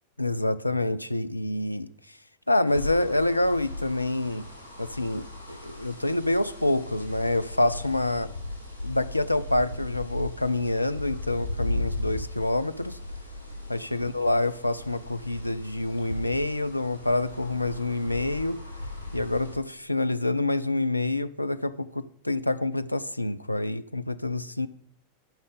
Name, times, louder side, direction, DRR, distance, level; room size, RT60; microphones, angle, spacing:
voice 1, 0.2-2.2 2.5-4.4 4.8-8.3 8.8-13.0 13.7-18.6 19.1-24.7, left 2 dB, 85° left, 0.4 m, -27 dB
sound 1, 2.7-19.5, left 1 dB, 85° right, 2.5 m, -37 dB
12.0 x 5.5 x 5.1 m
figure-of-eight pair, 90°, 0 cm